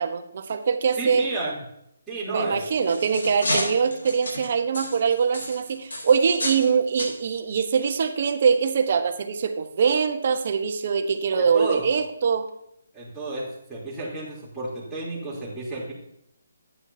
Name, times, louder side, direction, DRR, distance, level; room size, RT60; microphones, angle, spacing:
voice 1, 0.0-1.3 2.3-12.5, right 6 dB, 50° right, 8 dB, 1.1 m, -23 dB
voice 2, 1.0-1.6 2.1-2.6 11.4-11.9 12.9-15.9, right 2 dB, 5° right, -10 dB, 3.2 m, -32 dB
sound 1, 2.5-6.7 7.0-7.2 7.9-8.0 8.5-8.6, left 1 dB, 85° left, 3.9 m, -31 dB
11.0 x 9.1 x 2.8 m, 0.78 s
hypercardioid pair, 160°, 0 cm